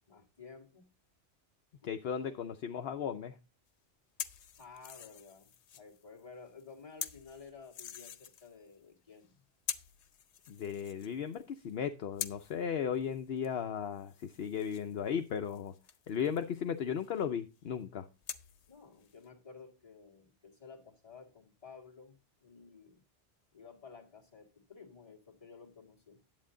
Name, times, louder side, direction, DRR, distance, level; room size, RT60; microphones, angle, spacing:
voice 1, 0.1-0.9 1.8-2.5 4.6-9.4 18.7-23.0 23.5-26.2, left 5 dB, 30° left, 0 dB, 2.1 m, -54 dB
voice 2, 1.8-3.4 10.5-15.7 16.1-18.1, left 8 dB, 65° left, 8 dB, 0.9 m, -36 dB
sound 1, 4.2-6.2 6.5-8.8 9.1-9.3 9.7-11.8 12.1-13.6 13.9-17.2 18.2-19.3, left 8 dB, 90° left, 1.1 m, -46 dB
10.5 x 8.2 x 3.8 m, 0.29 s
omnidirectional pair, 1.1 m